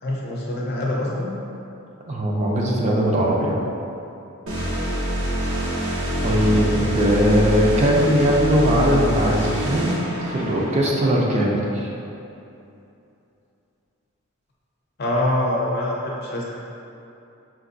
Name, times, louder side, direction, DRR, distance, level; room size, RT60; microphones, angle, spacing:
voice 1, 0.0-1.4 15.0-16.4, left 1 dB, 50° left, -4 dB, 0.6 m, -24 dB
voice 2, 2.1-3.7 6.2-11.9, equal, 30° right, -3 dB, 0.4 m, -20 dB
sound 1, 4.5-10.9, equal, 70° right, 0.8 m, -25 dB
5.7 x 2.6 x 2.6 m, 2.8 s
head